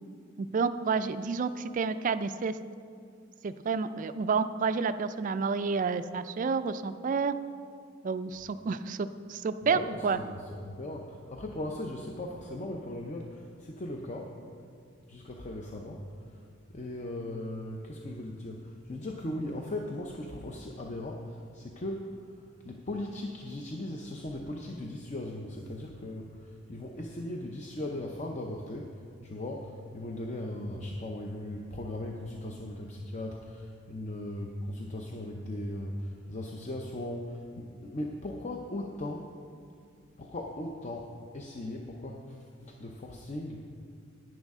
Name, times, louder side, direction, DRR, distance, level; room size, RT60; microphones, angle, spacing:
voice 1, 0.4-2.6 3.4-7.4 8.0-10.2, right 5 dB, 40° right, 12 dB, 0.3 m, -30 dB
voice 2, 9.6-10.4 10.6-14.3 15.1-16.1 16.7-22.1 22.6-28.9 29.2-39.3 40.2-41.1 41.3-43.6, left 1 dB, 35° left, 1 dB, 0.6 m, -38 dB
10.5 x 9.6 x 3.6 m, 2.3 s
head